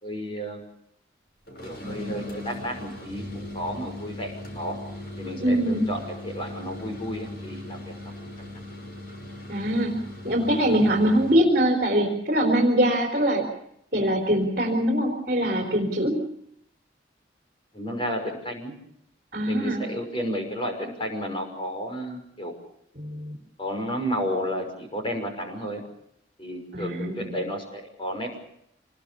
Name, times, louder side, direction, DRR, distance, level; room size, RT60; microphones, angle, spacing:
voice 1, 0.0-0.7 1.6-4.8 5.2-8.5 17.7-18.7 19.4-22.5 23.6-25.8 26.4-28.4, equal, 25° left, 4 dB, 5.9 m, -32 dB
sound 1, 1.5-11.5, left 1 dB, 55° left, 5.8 m, -39 dB
voice 2, 5.4-5.9 9.5-9.9 10.2-13.4 13.9-16.2 19.3-19.8 23.0-23.3 26.7-27.3, right 1 dB, 45° right, 0 dB, 4.1 m, -23 dB
26.5 x 21.0 x 6.9 m, 0.74 s
head